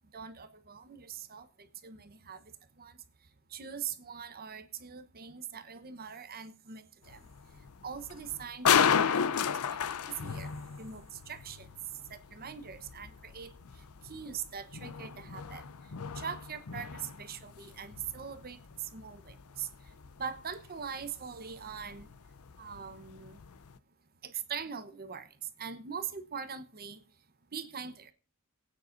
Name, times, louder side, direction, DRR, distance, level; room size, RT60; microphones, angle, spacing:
voice 1, 0.1-2.4 2.8-3.0 3.5-7.2 7.8-9.8 10.1-10.5 10.8-11.7 12.1-13.5 14.0-15.6 16.1-19.7 20.2-22.1 22.6-23.4 24.2-27.0 27.5-28.1, right 7 dB, 45° right, 1.0 m, -42 dB
sound 1, 7.1-23.8, left 7 dB, 75° left, 0.6 m, -34 dB
27.0 x 9.4 x 2.6 m
head